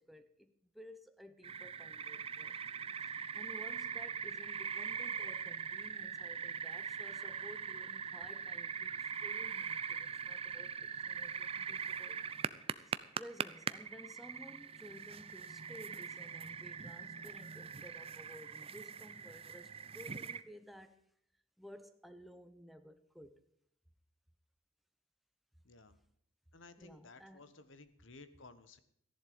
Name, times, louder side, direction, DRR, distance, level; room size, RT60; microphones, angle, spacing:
voice 1, 0.0-10.8 11.0-12.2 12.8-21.0 21.6-23.4 26.8-27.4, equal, ahead, 0.9 m, -55 dB
sound 1, 1.4-20.4, right 6 dB, 30° right, 0.5 m, -42 dB
voice 2, 25.6-26.0 26.5-28.8, left 3 dB, 70° left, 1.2 m, -56 dB
14.0 x 11.0 x 5.1 m
head